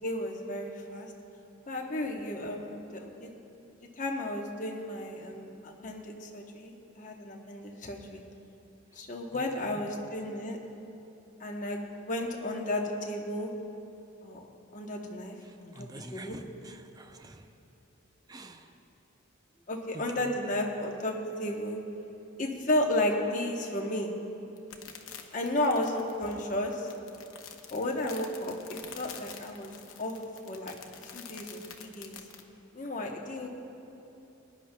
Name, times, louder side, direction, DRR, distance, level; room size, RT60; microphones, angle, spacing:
voice 1, 0.0-1.1 1.7-3.3 3.8-8.2 8.9-10.6 11.4-13.5 14.2-15.4 15.6-16.4 19.7-21.8 22.4-24.1 25.3-26.9 27.7-30.2 30.5-30.8 31.1-32.2 32.7-33.5, left 1 dB, 35° left, 1 dB, 0.9 m, -33 dB
voice 2, 9.3-9.8 15.4-17.6 18.3-18.7 19.5-19.6 19.9-20.4, right 2 dB, 20° right, 6 dB, 0.4 m, -48 dB
sound 1, 24.6-32.4, left 7 dB, 85° left, 0.8 m, -47 dB
21.5 x 10.5 x 2.2 m, 2.9 s
head